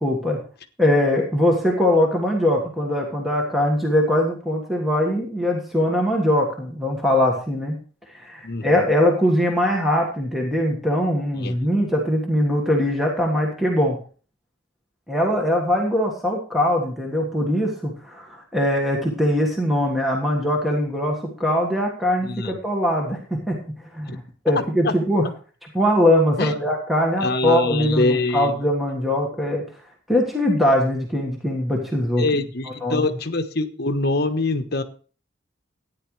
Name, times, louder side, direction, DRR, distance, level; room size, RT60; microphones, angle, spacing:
voice 1, 0.0-0.4 0.8-7.8 8.1-14.0 15.1-23.6 23.9-25.3 25.7-29.6 30.1-32.2 32.8-33.1, left 1 dB, ahead, 0 dB, 1.5 m, -21 dB
voice 2, 8.4-8.9 11.3-11.7 22.2-22.6 24.1-24.2 24.5-24.9 26.4-26.5 27.2-28.6 32.2-34.8, left 2 dB, 50° left, 7 dB, 1.1 m, -24 dB
14.0 x 9.8 x 3.2 m, 0.38 s
head